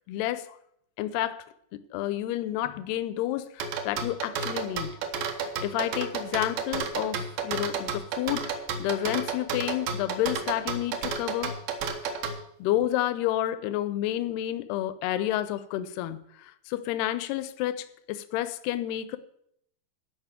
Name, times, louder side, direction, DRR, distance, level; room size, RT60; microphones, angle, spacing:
voice 1, 0.1-0.5 1.0-1.5 1.7-5.0 5.4-8.5 8.8-11.6 12.6-19.2, left 13 dB, 80° left, 13 dB, 2.4 m, -30 dB
sound 1, 3.6-12.4, right 5 dB, 70° right, 2.6 m, -31 dB
13.0 x 5.6 x 8.9 m, 0.73 s
omnidirectional pair, 5.2 m